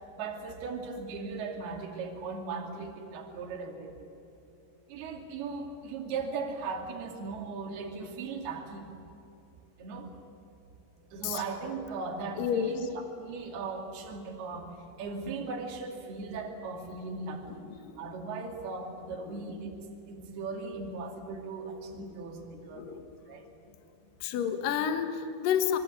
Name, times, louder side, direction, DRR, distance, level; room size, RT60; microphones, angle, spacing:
voice 1, 0.1-3.9 4.9-8.9 9.8-10.1 11.1-17.6 18.0-19.8 20.1-22.8 23.3-23.5, right 4 dB, 60° right, 3 dB, 4.2 m, -38 dB
voice 2, 12.4-12.9 17.8-18.0 19.1-19.4 22.0-22.2 22.7-23.0 24.2-25.8, left 8 dB, 60° left, 7 dB, 2.6 m, -30 dB
26.5 x 24.0 x 8.5 m, 2.9 s
omnidirectional pair, 5.5 m